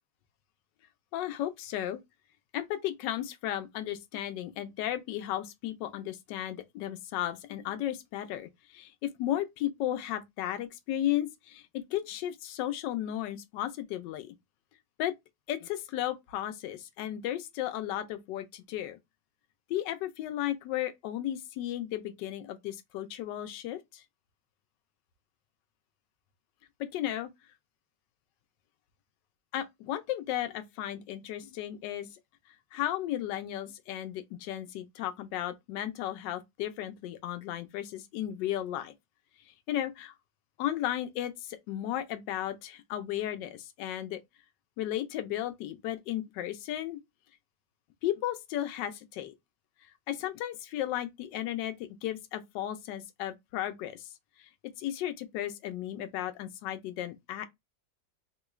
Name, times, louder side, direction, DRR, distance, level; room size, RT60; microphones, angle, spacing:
voice 1, 1.1-2.0 2.5-14.3 15.0-15.1 15.5-19.0 19.7-24.0 26.8-27.3 29.5-32.1 32.7-38.9 39.5-40.1 40.6-44.2 44.8-47.0 48.0-49.3 50.1-51.8 52.0-54.1 54.4-54.5 54.8-57.5, left 12 dB, 75° left, 1.2 m, -34 dB
3.7 x 2.3 x 3.0 m
omnidirectional pair, 2.0 m